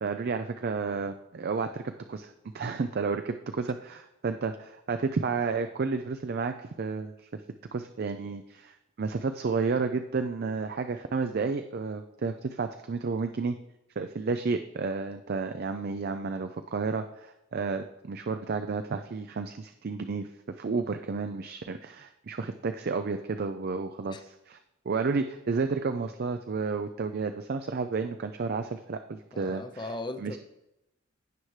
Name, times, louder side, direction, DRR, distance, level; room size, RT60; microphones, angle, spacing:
voice 1, 0.0-7.4 7.7-13.6 14.0-20.3 20.6-24.6 24.9-29.9 30.2-30.4, right 4 dB, 45° right, 0.4 m, -31 dB
voice 2, 29.3-30.4, left 2 dB, 20° left, 0.6 m, -37 dB
16.0 x 5.8 x 3.2 m
head